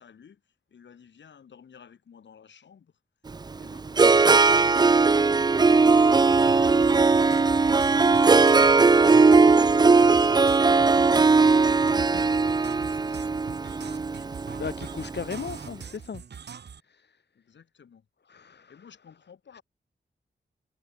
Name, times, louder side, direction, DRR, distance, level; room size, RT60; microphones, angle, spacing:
voice 1, 0.0-2.9 17.3-18.1 18.7-19.6, left 7 dB, 85° left, 5.7 m, -55 dB
Harp, 3.3-15.4, right 4 dB, 25° right, 0.4 m, -19 dB
sound 1, 6.1-16.8, right 7 dB, 70° right, 1.2 m, -42 dB
voice 2, 14.6-16.2 16.9-17.2 18.3-18.7 19.5-19.6, left 6 dB, 70° left, 2.4 m, -36 dB
cardioid pair, 55°, 18 cm